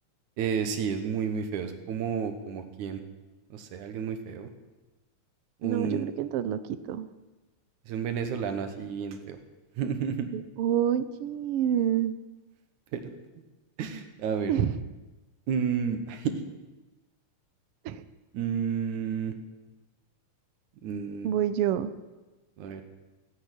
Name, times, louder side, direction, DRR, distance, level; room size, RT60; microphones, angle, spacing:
voice 1, 0.4-3.0 3.5-4.5 5.6-6.0 7.9-9.4 9.8-10.3 12.9-13.2 13.8-14.5 15.5-16.4 18.3-19.3 20.8-21.3 22.6-22.8, right 7 dB, 70° right, 8 dB, 2.7 m, -31 dB
voice 2, 5.6-7.1 10.3-12.2 14.5-14.8 17.8-18.0 21.2-21.9, right 10 dB, 85° right, 12 dB, 1.2 m, -27 dB
16.0 x 10.5 x 8.3 m, 1.2 s
omnidirectional pair, 3.7 m